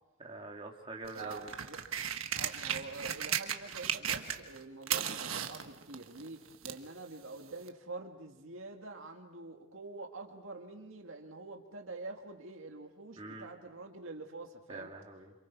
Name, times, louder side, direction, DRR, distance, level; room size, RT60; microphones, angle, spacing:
voice 1, 0.2-1.5 13.2-13.5 14.7-15.3, right 2 dB, 25° right, -1 dB, 2.9 m, -44 dB
sound 1, 1.0-4.6 4.8-6.9 7.7-7.8, right 9 dB, 90° right, 1.3 m, -36 dB
voice 2, 1.1-1.8 2.3-14.9, right 3 dB, 75° right, 2 dB, 2.1 m, -46 dB
29.0 x 27.0 x 4.7 m, 0.98 s
head